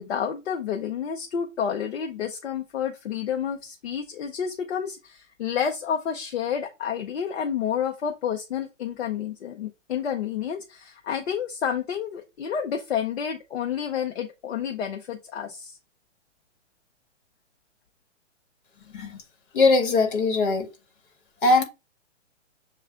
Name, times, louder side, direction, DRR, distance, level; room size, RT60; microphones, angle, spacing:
voice 1, 0.0-15.8, left 8 dB, 60° left, 0.7 m, -30 dB
voice 2, 18.8-19.2 19.5-20.7 21.4-21.6, left 3 dB, 45° left, 1.4 m, -21 dB
7.0 x 2.4 x 2.5 m
hypercardioid pair, 130°, 37 cm